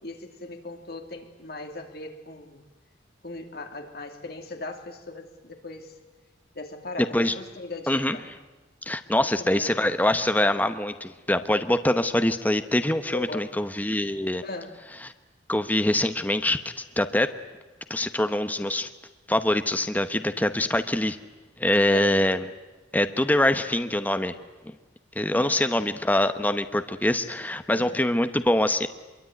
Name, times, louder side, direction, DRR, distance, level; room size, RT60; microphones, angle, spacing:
voice 1, 0.0-2.6 3.2-5.9 6.5-8.2 9.2-9.8 13.1-13.5 14.4-14.8 21.9-22.2 25.3-25.9 27.7-28.0, left 2 dB, 55° left, 4 dB, 2.9 m, -39 dB
voice 2, 8.9-14.4 15.0-15.1 15.5-16.6 17.0-17.3 17.9-18.9 19.3-21.2 21.6-22.5 22.9-24.3 25.2-28.9, left 1 dB, 10° left, 9 dB, 0.9 m, -24 dB
24.5 x 22.5 x 9.3 m, 1.2 s
head